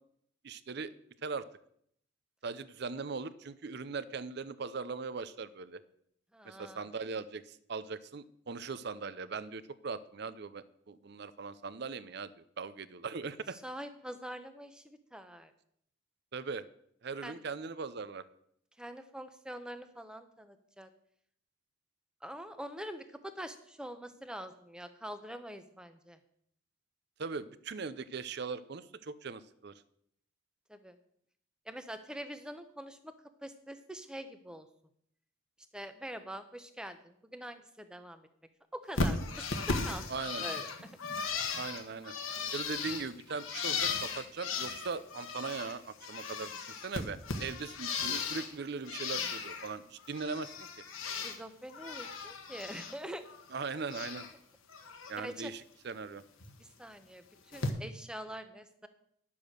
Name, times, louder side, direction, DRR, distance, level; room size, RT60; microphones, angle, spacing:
voice 1, 0.4-0.9 1.2-1.4 2.4-5.8 6.5-12.3 12.6-13.6 16.3-16.6 17.0-18.2 27.2-29.7 40.1-40.4 41.6-42.1 42.5-46.5 46.8-50.7 53.5-54.3 55.1-56.2, right 4 dB, 55° right, 15 dB, 0.6 m, -40 dB
voice 2, 6.3-6.9 13.5-15.5 17.2-17.4 18.8-20.9 22.2-26.2 30.7-31.0 31.7-33.1 33.4-34.7 35.7-38.3 38.7-40.1 40.4-40.9 51.1-53.2 55.2-55.5 56.6-58.9, equal, 5° right, 9 dB, 0.7 m, -44 dB
Bird, 39.0-45.8 46.0-48.5 48.9-49.7 50.0-51.4 51.7-52.9 53.3-54.3 54.7-55.1 56.4-56.5 57.5-57.7, left 4 dB, 85° left, 1.3 m, -36 dB
10.5 x 7.1 x 6.4 m, 0.70 s
head